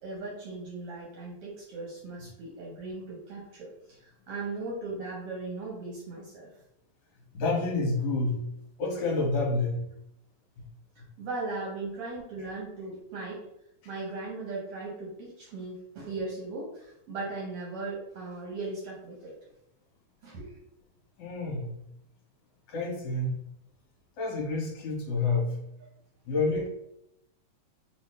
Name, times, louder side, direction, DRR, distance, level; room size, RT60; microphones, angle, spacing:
voice 1, 0.0-6.5 11.2-13.4 13.8-19.3 20.2-20.6, right 3 dB, 75° right, -4 dB, 1.3 m, -38 dB
voice 2, 7.3-8.5 8.8-9.9 10.6-10.7 21.2-21.8 22.7-23.4 24.2-25.6 26.3-26.7, left 3 dB, 65° left, -3 dB, 2.3 m, -29 dB
6.1 x 2.1 x 3.5 m, 0.80 s
omnidirectional pair, 3.8 m